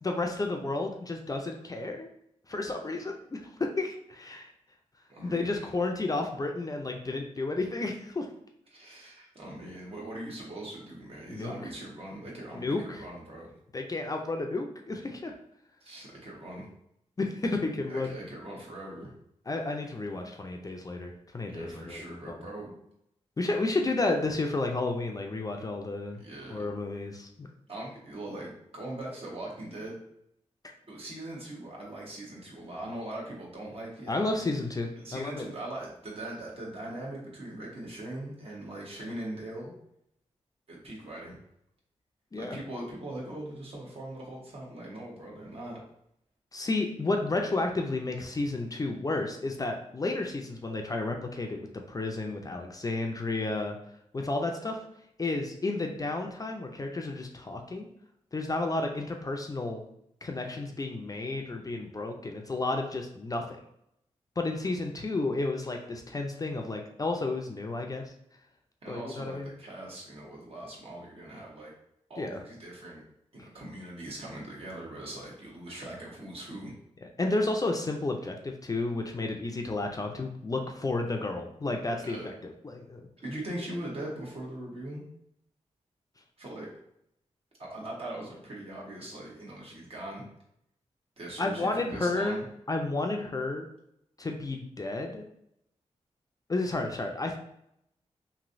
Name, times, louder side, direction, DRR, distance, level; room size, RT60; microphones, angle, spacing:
voice 1, 0.0-2.1 2.5-4.5 5.2-8.3 11.3-11.6 12.5-13.0 13.7-15.3 17.2-18.1 19.5-22.4 23.4-26.2 26.5-27.5 34.1-35.5 42.3-42.6 46.5-53.8 54.1-54.8 55.2-57.9 58.3-59.8 60.2-63.6 64.4-68.1 68.9-69.5 72.2-72.4 77.0-83.1 91.4-92.4 92.7-93.7 94.2-95.2 96.5-97.4, left 2 dB, 30° left, 3 dB, 0.4 m, -32 dB
voice 2, 5.1-5.6 8.7-13.6 15.8-16.7 17.9-19.1 21.5-22.7 26.2-26.7 27.7-30.0 30.9-34.4 35.0-39.7 40.7-41.4 42.3-45.8 68.8-71.7 72.1-73.0 73.3-76.7 82.0-82.3 83.2-85.0 86.4-86.7 87.6-90.3 91.2-92.4, right 1 dB, 55° right, -3 dB, 1.1 m, -41 dB
3.0 x 2.6 x 2.5 m, 0.76 s
cardioid pair, 65°, 12 cm